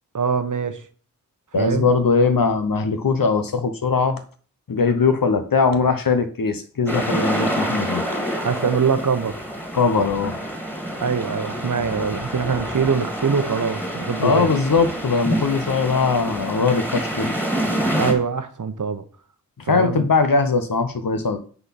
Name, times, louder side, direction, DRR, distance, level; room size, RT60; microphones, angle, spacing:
voice 1, 0.1-0.8 1.6-1.9 8.4-9.4 11.0-14.5 18.0-19.0 19.7-20.1, right 6 dB, 60° right, 1.0 m, -23 dB
voice 2, 1.5-4.2 4.7-8.0 9.7-10.4 14.2-17.3 19.7-21.4, left 4 dB, 70° left, 0.9 m, -20 dB
sound 1, 6.9-18.1, right 1 dB, 5° left, 2.3 m, -27 dB
9.7 x 4.0 x 5.8 m
wide cardioid pair, 70°, 35 cm